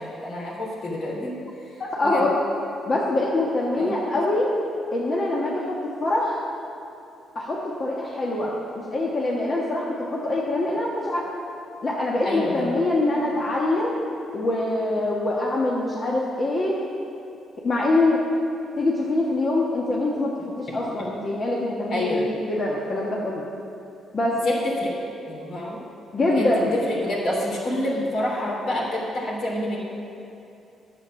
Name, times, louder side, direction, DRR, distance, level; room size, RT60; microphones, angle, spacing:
voice 1, 0.0-1.3 2.0-2.2 3.8-4.0 12.2-12.8 21.9-22.2 24.4-25.0 25.3-25.8 26.3-29.8, left 1 dB, 65° left, -3 dB, 2.8 m, -28 dB
voice 2, 2.0-2.4 2.9-4.5 4.9-5.7 6.0-6.4 7.3-8.5 8.9-11.3 11.8-14.0 14.3-16.8 17.6-18.2 18.8-23.4 24.1-24.4 26.1-26.7, left 2 dB, 40° left, -4 dB, 1.3 m, -24 dB
9.7 x 7.3 x 6.2 m, 2.8 s
cardioid pair, 90°, 0 cm